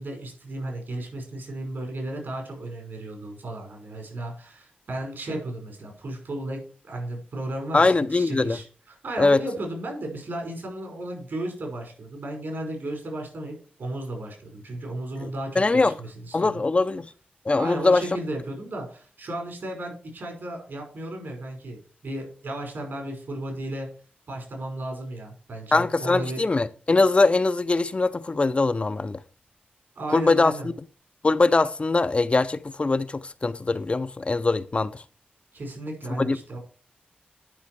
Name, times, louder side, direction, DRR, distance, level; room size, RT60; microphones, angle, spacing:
voice 1, 0.0-16.6 17.6-23.9 24.3-26.4 30.0-30.7 35.5-36.6, right 1 dB, 75° right, 5.3 m, -34 dB
voice 2, 7.7-8.6 9.2-9.4 15.2-15.3 15.6-15.9 16.3-17.1 17.5-18.0 25.7-29.2 30.1-30.7 31.2-34.9 36.2-36.4, left 3 dB, 35° left, 0.5 m, -22 dB
11.0 x 5.5 x 4.7 m
wide cardioid pair, 80°, 3 cm